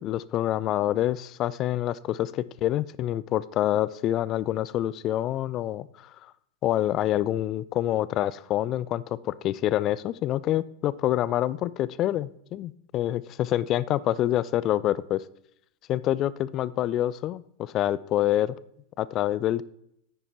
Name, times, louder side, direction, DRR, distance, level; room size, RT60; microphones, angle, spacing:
voice 1, 0.0-6.1 6.6-15.2 15.9-18.6 19.0-19.6, left 13 dB, 35° left, 19 dB, 0.3 m, -26 dB
9.7 x 9.2 x 2.9 m, 0.76 s
figure-of-eight pair, 90°, 0 cm